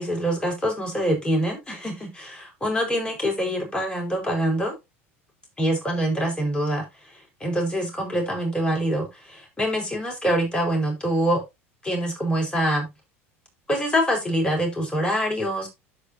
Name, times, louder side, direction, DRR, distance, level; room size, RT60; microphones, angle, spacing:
voice 1, 0.0-4.7 5.6-11.4 11.8-12.9 13.7-15.7, equal, 15° left, 1 dB, 4.8 m, -25 dB
13.0 x 5.4 x 2.8 m, 0.22 s
hypercardioid pair, 75°, 7 cm